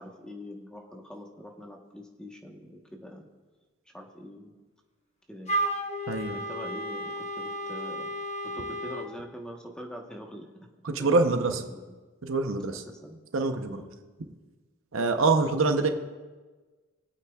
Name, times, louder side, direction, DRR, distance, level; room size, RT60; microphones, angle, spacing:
voice 1, 0.0-3.2 3.9-4.5 5.3-5.6 6.3-8.1 8.4-10.7 11.0-12.0 12.7-13.2 13.7-13.9, equal, 5° left, 1 dB, 1.1 m, -44 dB
Wind instrument woodwind instrument, 5.5-9.1, right 1 dB, 35° left, 0.9 m, -33 dB
voice 2, 6.1-6.4 10.8-11.6 12.2-12.8 13.3-13.8 14.9-15.9, right 3 dB, 70° right, 7 dB, 0.8 m, -25 dB
24.5 x 8.4 x 2.4 m, 1.3 s
head